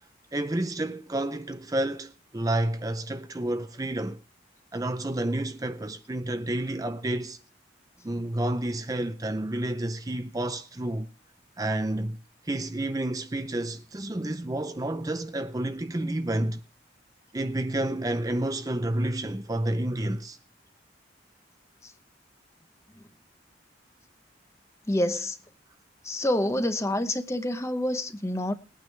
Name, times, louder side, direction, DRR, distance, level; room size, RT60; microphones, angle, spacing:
voice 1, 0.3-4.2 4.7-7.4 8.0-11.1 11.6-12.2 12.4-16.6 17.3-20.4, right 1 dB, 20° right, 0.5 m, -30 dB
voice 2, 24.9-25.4 26.0-28.5, left 1 dB, 15° left, 0.8 m, -27 dB
20.0 x 9.2 x 3.2 m
head